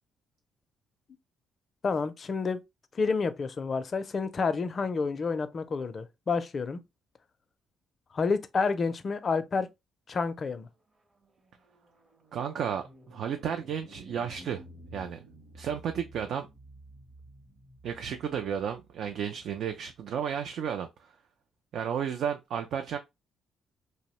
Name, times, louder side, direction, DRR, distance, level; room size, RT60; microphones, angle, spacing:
voice 1, 1.8-2.6 2.9-6.8 8.1-9.7 10.1-10.7, left 4 dB, 45° left, 0.4 m, -29 dB
sound 1, 10.6-20.1, right 1 dB, 35° right, 0.8 m, -53 dB
voice 2, 12.3-14.6 14.9-15.2 15.5-16.5 17.8-21.1 21.7-23.0, right 8 dB, 70° right, 0.3 m, -33 dB
2.6 x 2.0 x 2.9 m
cardioid pair, 90°, 0 cm